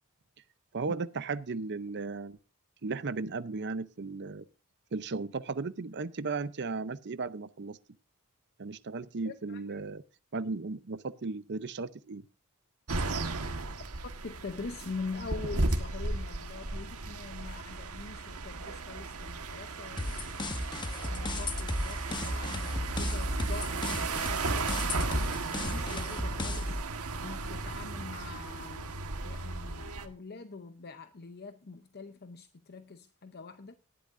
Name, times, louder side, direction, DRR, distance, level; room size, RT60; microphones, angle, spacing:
voice 1, 0.7-2.4 2.8-4.5 4.9-7.8 8.6-10.0 10.3-12.2, right 4 dB, 50° right, 0.6 m, -35 dB
voice 2, 9.2-9.8 14.0-20.5 21.1-33.8, left 4 dB, 45° left, 0.7 m, -44 dB
sound 1, 12.9-30.1, right 3 dB, 80° right, 1.5 m, -35 dB
sound 2, 20.0-26.8, left 1 dB, 20° left, 0.9 m, -35 dB
18.5 x 11.5 x 2.6 m
head